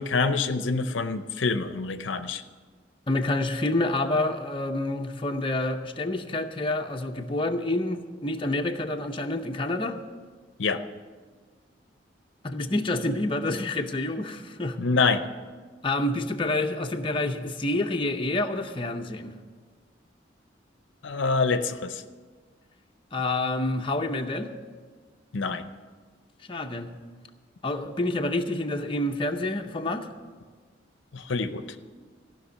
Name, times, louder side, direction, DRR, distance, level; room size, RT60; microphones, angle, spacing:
voice 1, 0.0-2.4 10.6-10.8 14.8-15.2 21.0-22.0 25.3-25.6 31.1-31.6, left 4 dB, 85° left, 10 dB, 0.7 m, -26 dB
voice 2, 3.1-10.0 12.4-14.8 15.8-19.3 23.1-24.5 26.5-26.9 27.6-30.1, left 2 dB, 30° left, 4 dB, 0.7 m, -28 dB
14.5 x 6.0 x 9.3 m, 1.5 s
head